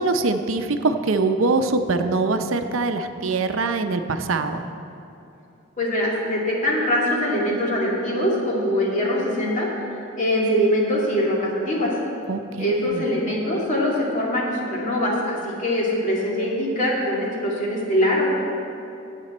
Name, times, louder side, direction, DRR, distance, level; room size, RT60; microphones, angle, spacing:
voice 1, 0.0-4.6 12.3-13.1, right 3 dB, 80° right, 7 dB, 0.6 m, -23 dB
voice 2, 5.8-9.7 10.2-11.9 12.6-18.3, equal, 40° left, -4 dB, 2.3 m, -23 dB
15.0 x 8.2 x 4.3 m, 2.8 s
head